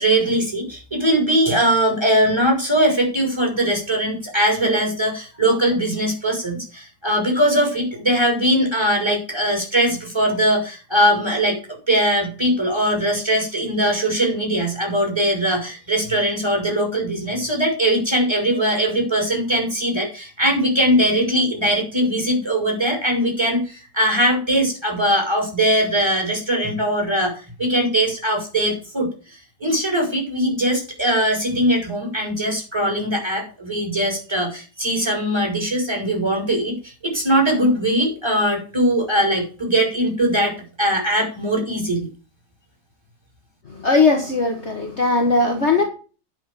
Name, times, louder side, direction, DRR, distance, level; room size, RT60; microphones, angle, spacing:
voice 1, 0.0-40.5 40.8-42.1, right 1 dB, 15° right, 1 dB, 5.3 m, -21 dB
voice 2, 43.7-45.8, left 3 dB, 40° left, 1 dB, 1.9 m, -18 dB
10.5 x 6.2 x 6.8 m, 0.35 s
omnidirectional pair, 1.9 m